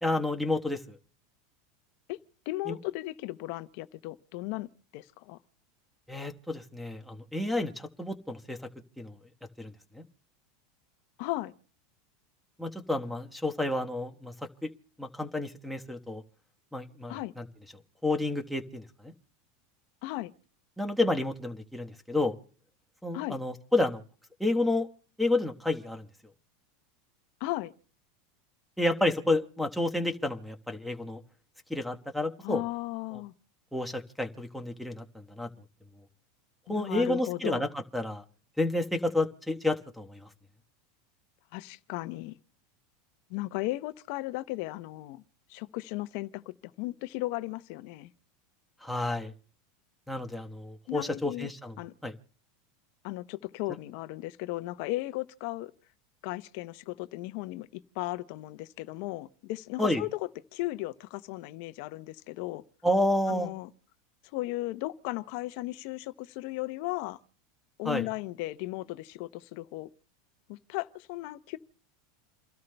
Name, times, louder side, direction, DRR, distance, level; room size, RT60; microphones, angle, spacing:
voice 1, 0.0-1.0 2.7-2.8 6.1-8.6 9.0-9.1 9.6-10.0 12.6-14.3 14.6-14.7 15.0-16.2 16.7-17.4 18.0-19.1 20.8-22.3 23.0-24.0 24.4-24.9 25.2-26.1 28.8-31.2 31.7-32.6 33.7-35.5 36.7-38.2 38.6-40.3 48.8-49.3 50.1-51.8 52.0-52.1 59.8-60.0 62.8-63.5 67.8-68.1, left 2 dB, ahead, 1.2 m, -30 dB
voice 2, 2.5-5.4 11.2-11.5 17.1-17.3 20.0-20.3 23.1-23.4 27.4-27.7 32.4-33.3 36.7-37.6 41.5-42.3 43.3-45.2 45.5-48.1 50.9-51.5 51.8-51.9 53.0-55.7 56.2-57.7 57.9-62.6 63.3-63.7 64.3-67.2 67.8-69.9 70.5-71.6, left 18 dB, 65° left, 0.7 m, -36 dB
29.0 x 12.5 x 2.2 m
supercardioid pair, 120°, 0 cm